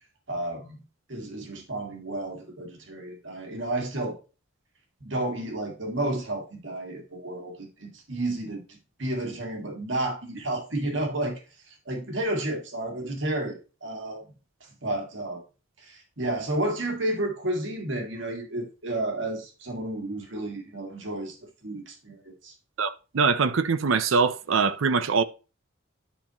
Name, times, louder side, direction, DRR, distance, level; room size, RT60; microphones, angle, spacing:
voice 1, 0.3-0.8 1.1-4.2 5.0-11.4 11.7-14.2 14.8-15.4 15.8-21.4 21.6-22.5, right 1 dB, 60° right, 2.0 m, -31 dB
voice 2, 22.8-25.2, right 5 dB, 80° right, 0.6 m, -23 dB
11.0 x 5.9 x 3.0 m
head